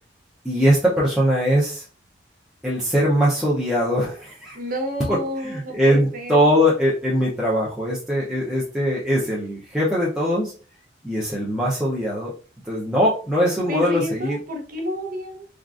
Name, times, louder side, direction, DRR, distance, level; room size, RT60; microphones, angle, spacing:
voice 1, 0.4-1.8 2.6-4.6 5.1-10.5 11.0-12.3 12.6-14.4, equal, 5° right, -7 dB, 0.6 m, -21 dB
voice 2, 4.5-6.5 13.7-15.5, equal, 50° right, 3 dB, 0.7 m, -30 dB
3.6 x 2.4 x 2.4 m, 0.36 s
head